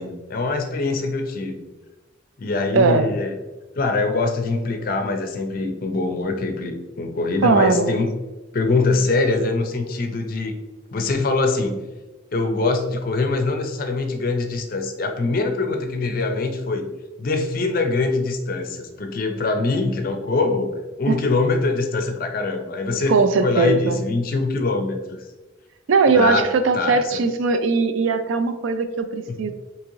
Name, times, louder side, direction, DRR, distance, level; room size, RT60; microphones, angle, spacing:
voice 1, 0.0-1.6 2.4-3.4 3.8-8.1 8.5-10.5 10.9-11.8 12.3-16.9 17.2-20.7 21.0-25.2 26.1-26.5 26.7-27.2 29.3-29.4, left 3 dB, 45° left, 5 dB, 0.4 m, -23 dB
voice 2, 2.7-3.1 7.4-7.9 21.1-21.2 23.1-24.0 25.9-29.5, right 4 dB, 75° right, 9 dB, 0.3 m, -19 dB
3.6 x 2.8 x 3.0 m, 1.1 s
head